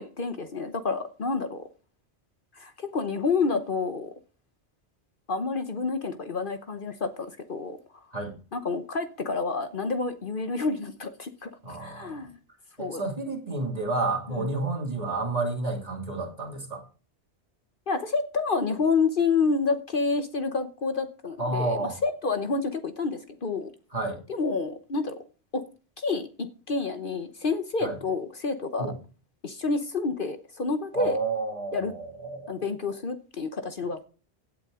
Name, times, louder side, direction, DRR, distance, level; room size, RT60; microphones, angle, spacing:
voice 1, 0.0-1.6 2.5-4.1 5.3-8.0 8.5-11.5 11.8-12.4 12.8-13.0 14.4-14.5 17.9-23.7 24.3-25.1 25.5-25.6 26.0-28.9 29.4-31.2 31.7-31.9 32.5-34.0, left 4 dB, 50° left, 1.2 m, -29 dB
voice 2, 11.6-12.2 12.8-16.8 21.4-22.0 23.9-24.2 27.8-28.0 28.8-28.9 30.9-32.5, right 2 dB, 35° right, 2.7 m, -30 dB
16.5 x 8.4 x 3.8 m
omnidirectional pair, 1.1 m